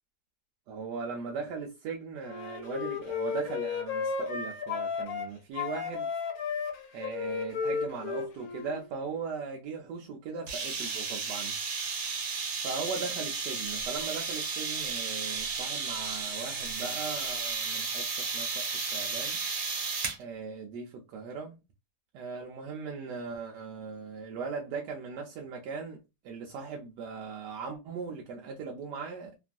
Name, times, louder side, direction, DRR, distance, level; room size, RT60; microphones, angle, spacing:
voice 1, 0.7-6.1 6.9-11.6 12.6-19.4 20.2-21.6 22.1-29.4, right 5 dB, 85° right, 1.2 m, -39 dB
Wind instrument woodwind instrument, 2.2-5.3 5.5-8.9, left 5 dB, 70° left, 1.0 m, -34 dB
sound 1, 10.5-20.2, right 4 dB, 70° right, 1.4 m, -33 dB
3.0 x 2.3 x 2.5 m
omnidirectional pair, 1.8 m